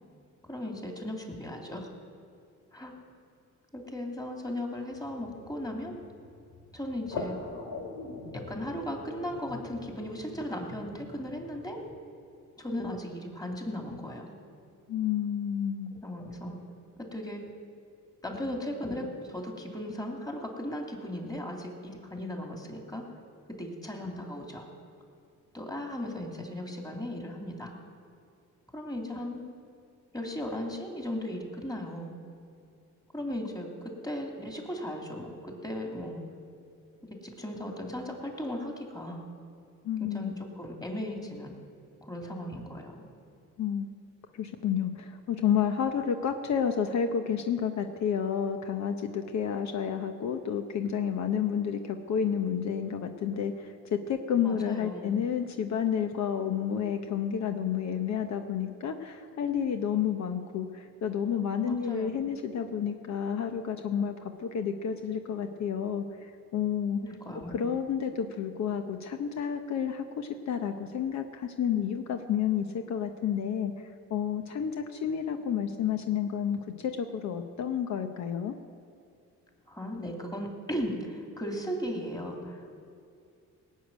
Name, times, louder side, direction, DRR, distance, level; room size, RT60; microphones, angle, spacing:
voice 1, 0.5-1.9 2.7-2.9 3.7-6.0 6.7-7.4 8.3-11.8 12.6-14.4 16.0-16.5 17.0-17.4 18.2-23.0 23.6-24.7 25.5-27.7 28.7-29.4 30.1-32.1 33.1-36.2 37.2-39.2 40.1-41.5 42.0-43.0 54.4-55.1 61.6-62.1 67.0-67.6 79.7-82.7, left 1 dB, 15° left, 1 dB, 2.8 m, -37 dB
sound 1, 4.9-12.0, left 3 dB, 90° left, 2.5 m, -43 dB
voice 2, 14.9-15.9 39.8-40.3 43.6-43.9 44.3-67.0 67.5-78.5, left 8 dB, 65° left, 6 dB, 1.0 m, -30 dB
18.0 x 6.6 x 9.2 m, 2.5 s
cardioid pair, 90°, 30 cm